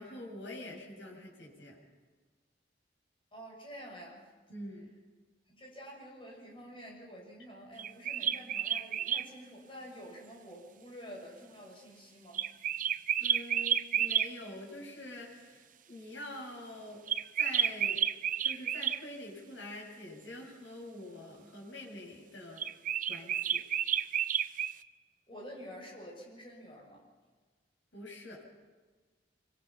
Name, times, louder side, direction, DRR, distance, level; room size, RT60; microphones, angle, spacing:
voice 1, 0.0-1.8 4.5-4.9 13.2-17.1 17.4-18.1 18.4-22.6 23.1-23.6 27.9-28.4, left 1 dB, 75° left, -1 dB, 7.6 m, -45 dB
voice 2, 3.3-4.3 5.5-12.4 25.3-27.1, equal, 30° left, -1 dB, 7.2 m, -48 dB
sound 1, 7.8-9.3 12.3-14.3 17.1-19.0 22.6-24.7, right 9 dB, 45° right, 0.6 m, -31 dB
25.0 x 24.0 x 5.8 m, 1.4 s
head